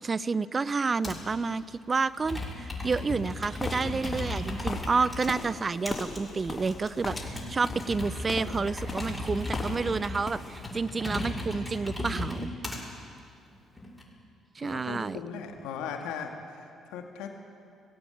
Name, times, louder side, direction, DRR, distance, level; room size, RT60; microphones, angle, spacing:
voice 1, 0.0-12.5 14.6-15.2, right 4 dB, 35° right, 17 dB, 0.7 m, -30 dB
Computer keyboard, 1.0-1.3 2.1-5.3 5.9-12.8 13.5-14.0, left 2 dB, 10° left, 6.8 m, -36 dB
sound 1, 3.6-10.0 10.2-10.7, left 3 dB, 30° left, 3.2 m, -39 dB
voice 2, 14.6-17.3, left 6 dB, 70° left, 4 dB, 2.1 m, -38 dB
19.5 x 16.5 x 9.0 m, 2.4 s
hypercardioid pair, 45°, 0 cm